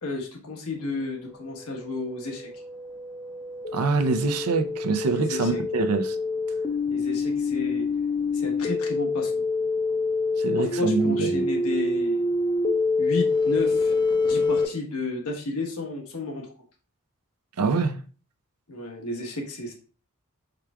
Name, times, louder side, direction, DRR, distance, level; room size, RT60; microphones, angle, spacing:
voice 1, 0.0-2.5 5.1-5.6 6.9-7.9 8.3-9.3 10.6-12.2 13.0-13.9 14.2-16.5 18.7-19.7, left 3 dB, 80° left, 1.3 m, -32 dB
sound 1, 1.4-14.6, left 3 dB, 20° left, 0.5 m, -26 dB
voice 2, 3.7-6.2 10.4-11.4 17.6-18.0, right 4 dB, 90° right, 0.6 m, -25 dB
4.8 x 4.6 x 2.3 m
head